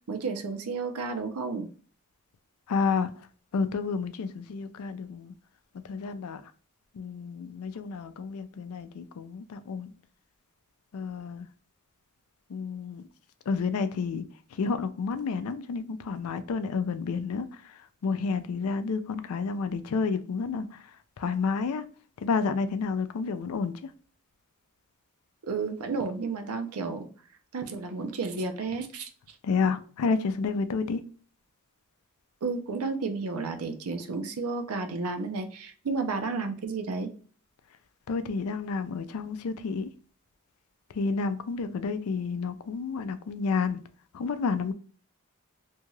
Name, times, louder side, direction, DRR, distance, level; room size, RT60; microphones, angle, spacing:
voice 1, 0.1-1.7 25.4-27.1 27.5-29.1 32.4-37.1, right 4 dB, 80° right, 0.6 m, -32 dB
voice 2, 2.7-3.1 3.5-5.3 5.8-6.4 6.9-9.9 10.9-11.5 12.5-13.1 13.5-14.2 14.5-20.9 21.2-21.8 22.2-23.9 29.4-31.0 38.1-39.9 40.9-43.8 44.1-44.7, left 4 dB, 75° left, 0.4 m, -30 dB
2.7 x 2.3 x 3.0 m
head